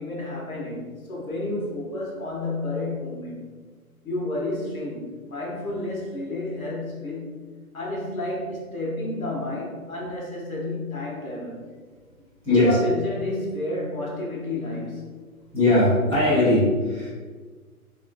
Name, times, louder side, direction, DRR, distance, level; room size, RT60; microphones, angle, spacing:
voice 1, 0.0-3.4 4.0-7.4 7.7-11.7 12.5-15.2, left 2 dB, 70° left, -4 dB, 1.4 m, -31 dB
voice 2, 12.4-12.8 15.5-17.1, left 2 dB, 10° left, -11 dB, 1.1 m, -19 dB
4.9 x 3.1 x 2.3 m, 1.5 s
figure-of-eight pair, 130°, 44 cm